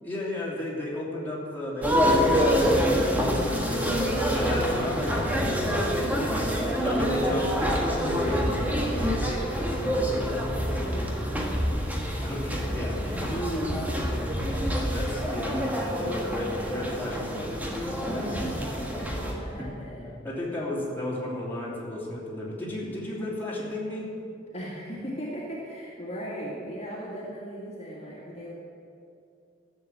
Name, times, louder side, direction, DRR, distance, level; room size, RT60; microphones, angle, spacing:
voice 1, 0.0-2.7 3.1-6.5 6.8-9.3 9.5-10.5 12.2-13.2 14.8-17.5 18.0-18.3 18.5-18.7 19.6-19.7 20.2-24.1, left 1 dB, 10° left, -6 dB, 3.0 m, -34 dB
sound 1, 1.8-19.3, equal, 10° right, 1.6 m, -27 dB
voice 2, 6.1-7.1 8.8-12.2 13.3-14.6 15.0-15.6 18.0-20.1 24.5-28.5, equal, 35° left, -6 dB, 2.4 m, -38 dB
14.0 x 7.5 x 7.7 m, 2.5 s
head